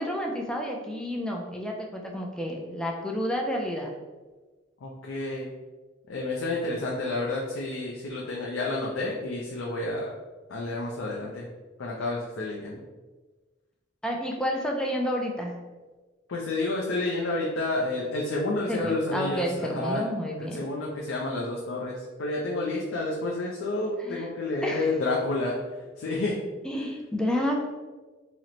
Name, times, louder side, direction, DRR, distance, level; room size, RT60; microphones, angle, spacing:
voice 1, 0.0-3.9 14.0-15.6 18.7-20.7 24.0-24.3 24.6-24.9 26.6-27.7, equal, 5° left, 0 dB, 0.3 m, -30 dB
voice 2, 4.8-5.5 6.1-10.1 10.5-11.5 11.8-12.8 16.3-20.0 20.4-25.5 26.0-26.4, left 2 dB, 85° left, -2 dB, 0.5 m, -30 dB
2.9 x 2.1 x 3.8 m, 1.3 s
head